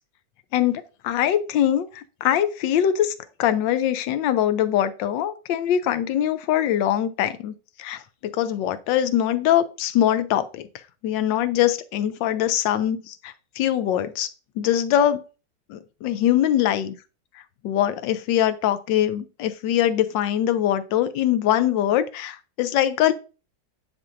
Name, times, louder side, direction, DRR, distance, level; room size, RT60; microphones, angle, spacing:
voice 1, 0.5-3.1 3.4-7.5 7.8-8.0 8.3-10.6 11.0-14.3 14.6-15.2 15.7-16.9 17.6-23.1, left 11 dB, 90° left, 1.3 m, -22 dB
9.7 x 4.4 x 2.6 m
omnidirectional pair, 1.9 m